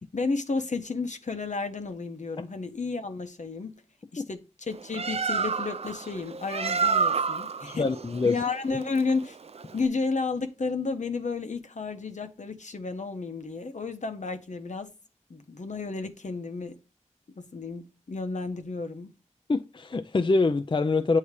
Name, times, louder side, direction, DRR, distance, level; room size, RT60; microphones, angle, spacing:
voice 1, 0.1-3.8 4.1-7.9 8.2-9.4 9.7-14.9 15.3-16.7 17.4-19.1, left 4 dB, 70° left, 0.8 m, -32 dB
Bird, 4.7-9.9, right 5 dB, 55° right, 0.4 m, -29 dB
voice 2, 7.7-8.4 19.5-21.2, left 3 dB, 40° left, 0.4 m, -25 dB
8.1 x 2.8 x 4.7 m
wide cardioid pair, 45°, 13 cm